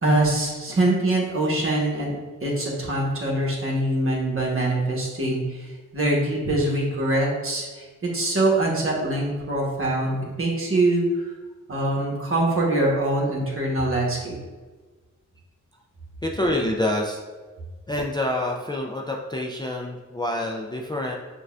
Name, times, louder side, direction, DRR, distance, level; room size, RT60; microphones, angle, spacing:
voice 1, 0.0-5.7 5.9-11.1 11.7-14.4, right 1 dB, 45° right, -3 dB, 1.2 m, -23 dB
voice 2, 16.2-17.2 17.9-21.2, left 1 dB, 15° left, 0 dB, 0.4 m, -27 dB
6.2 x 2.3 x 2.4 m, 1.3 s
cardioid pair, 70°, 31 cm